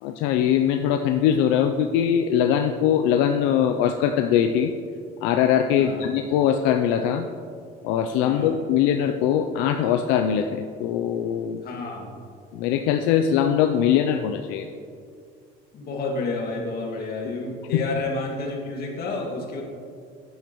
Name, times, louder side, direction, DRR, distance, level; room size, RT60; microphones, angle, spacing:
voice 1, 0.0-4.7 5.2-7.3 7.8-11.6 12.5-14.7 17.2-17.4 17.7-17.8, left 9 dB, 85° left, 6 dB, 0.5 m, -22 dB
voice 2, 5.8-6.1 8.2-8.6 11.6-12.1 15.7-19.6, left 3 dB, 55° left, -1 dB, 2.0 m, -30 dB
9.8 x 9.4 x 3.1 m, 2.3 s
cardioid pair, 105°, 19 cm